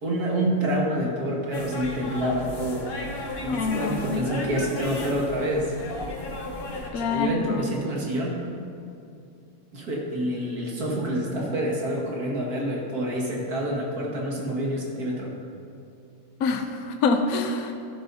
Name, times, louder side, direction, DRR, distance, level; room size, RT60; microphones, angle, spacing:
voice 1, 0.0-2.9 3.4-5.8 6.9-8.4 9.7-15.3, right 1 dB, 70° right, -3 dB, 2.3 m, -27 dB
sound 1, 1.5-6.9, left 2 dB, 40° left, 1.2 m, -35 dB
voice 2, 3.5-4.3 6.9-7.7 16.4-17.7, left 4 dB, 70° left, 5 dB, 1.1 m, -26 dB
15.0 x 11.0 x 2.7 m, 2.5 s
omnidirectional pair, 1.7 m